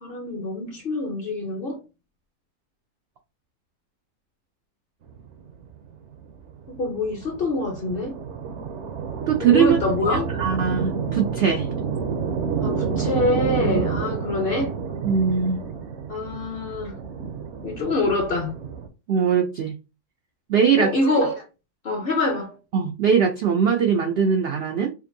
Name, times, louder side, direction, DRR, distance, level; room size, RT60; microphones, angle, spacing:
voice 1, 0.0-1.8 6.7-8.2 9.4-10.3 12.6-14.7 16.1-17.0 17.6-18.5 20.7-21.4 21.8-22.5, left 2 dB, 50° left, 0.7 m, -25 dB
sound 1, 5.1-18.9, right 6 dB, 60° right, 0.8 m, -29 dB
voice 2, 9.3-9.8 10.1-11.7 13.6-13.8 15.0-15.6 19.1-19.8 20.5-20.9 22.7-24.9, right 7 dB, 80° right, 0.5 m, -21 dB
5.2 x 2.5 x 2.6 m
omnidirectional pair, 1.6 m